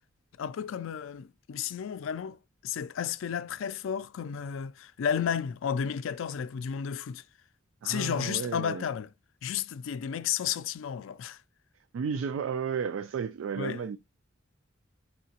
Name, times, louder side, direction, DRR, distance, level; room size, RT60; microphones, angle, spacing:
voice 1, 0.4-2.4 2.6-7.2 7.8-9.1 9.4-11.4 13.6-13.8, left 8 dB, 75° left, 0.4 m, -32 dB
voice 2, 7.8-8.8 11.9-14.0, right 6 dB, 75° right, 0.3 m, -33 dB
5.4 x 2.8 x 2.8 m
head